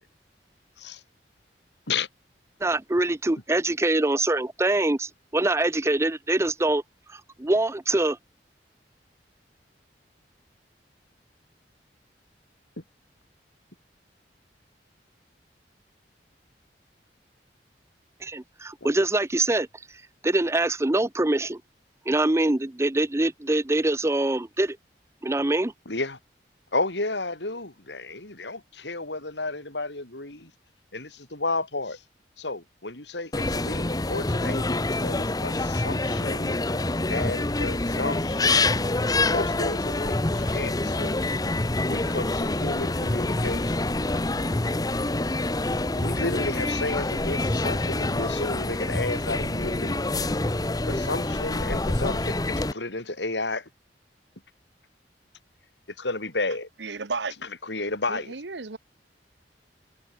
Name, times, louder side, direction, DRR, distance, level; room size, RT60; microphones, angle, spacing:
voice 1, 2.6-6.8 7.1-8.2 18.2-19.7 20.2-21.6 22.1-24.8 25.2-25.7, right 2 dB, 15° right, 0.6 m, -24 dB
voice 2, 25.8-26.2 26.7-30.5 30.9-32.0 32.4-38.7 39.3-41.2 41.9-43.9 45.9-50.0 50.9-53.7 56.0-56.7 57.6-58.3, left 2 dB, 85° left, 5.0 m, -32 dB
sound 1, 33.3-52.7, left 2 dB, 20° left, 1.0 m, -26 dB
voice 3, 56.8-57.4 58.1-58.8, right 4 dB, 90° right, 1.3 m, -33 dB
head